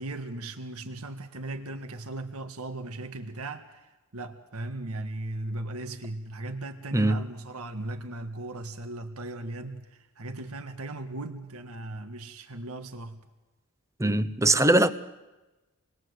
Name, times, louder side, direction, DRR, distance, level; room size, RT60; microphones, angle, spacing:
voice 1, 0.0-3.9 4.1-9.8 10.2-13.2, right 2 dB, 75° right, 1.7 m, -37 dB
voice 2, 14.0-14.9, right 1 dB, 15° right, 0.8 m, -21 dB
27.5 x 20.5 x 8.0 m
head